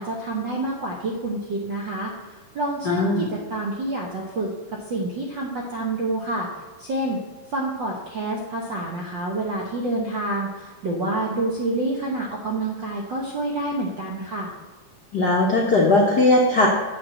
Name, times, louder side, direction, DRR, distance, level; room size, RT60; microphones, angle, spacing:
voice 1, 0.0-2.1 2.5-4.5 4.9-6.5 6.8-7.2 7.5-14.5, right 2 dB, 65° right, -1 dB, 1.2 m, -28 dB
voice 2, 2.8-3.3 15.1-16.7, left 2 dB, 65° left, -2 dB, 1.0 m, -18 dB
7.4 x 5.9 x 7.7 m, 1.3 s
omnidirectional pair, 3.5 m